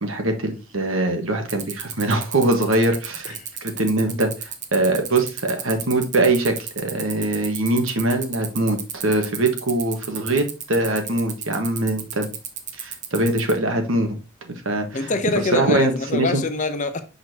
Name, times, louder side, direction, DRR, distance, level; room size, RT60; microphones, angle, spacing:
voice 1, 0.0-3.4 3.6-12.3 12.8-14.1 14.6-15.1 15.5-16.4, right 2 dB, 70° right, 1.5 m, -22 dB
sound 1, 1.5-13.5, right 8 dB, 35° right, 0.9 m, -31 dB
voice 2, 14.9-17.0, left 3 dB, 35° left, 0.7 m, -24 dB
6.2 x 5.8 x 2.9 m
head